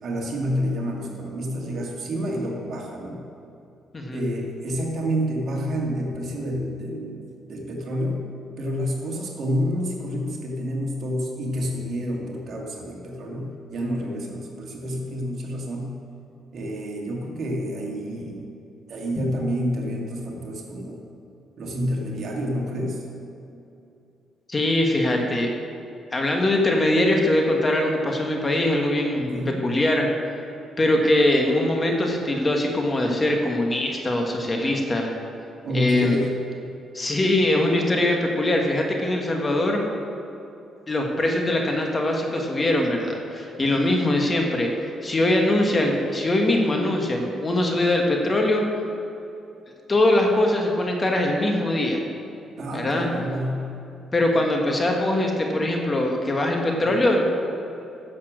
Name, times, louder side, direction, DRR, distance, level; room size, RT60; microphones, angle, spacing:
voice 1, 0.0-3.2 4.1-8.3 8.6-16.0 16.5-18.5 18.9-21.0 21.6-23.0 29.1-29.6 35.6-36.3 52.6-53.7 56.8-56.9, equal, 60° right, -1 dB, 2.1 m, -29 dB
voice 2, 24.5-25.5 26.1-29.3 29.6-30.1 30.8-35.1 35.7-36.2 36.9-39.8 40.9-44.7 45.0-48.6 49.9-52.0 52.7-53.1 54.1-57.2, left 1 dB, 25° left, 1 dB, 1.6 m, -22 dB
10.5 x 7.4 x 6.3 m, 2.7 s
cardioid pair, 90°, 0 cm